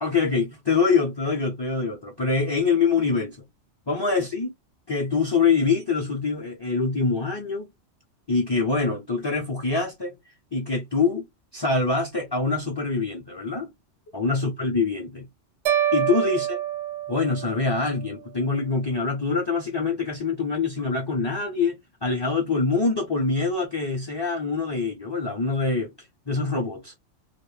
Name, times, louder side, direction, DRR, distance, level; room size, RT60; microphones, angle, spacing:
voice 1, 0.0-3.4 3.9-4.5 4.9-7.7 8.3-10.2 10.5-11.3 11.5-13.7 14.1-15.3 15.9-16.6 17.1-25.9 26.3-26.9, left 4 dB, 35° left, 0.4 m, -24 dB
sound 1, 15.7-17.9, right 11 dB, 85° right, 0.9 m, -26 dB
2.2 x 2.0 x 3.0 m
omnidirectional pair, 1.2 m